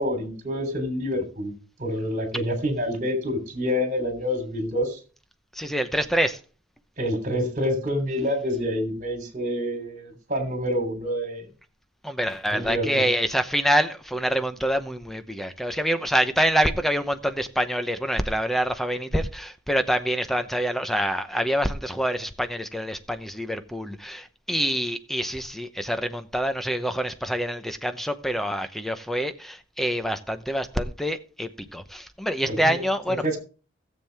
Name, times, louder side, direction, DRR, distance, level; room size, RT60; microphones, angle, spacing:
voice 1, 0.0-1.5 1.8-5.0 7.0-11.5 12.5-13.0 32.5-32.8 33.2-33.4, equal, 40° right, 3.3 m, -27 dB
voice 2, 5.5-6.4 12.0-33.2, equal, ahead, 0.8 m, -26 dB
16.5 x 7.4 x 3.4 m
head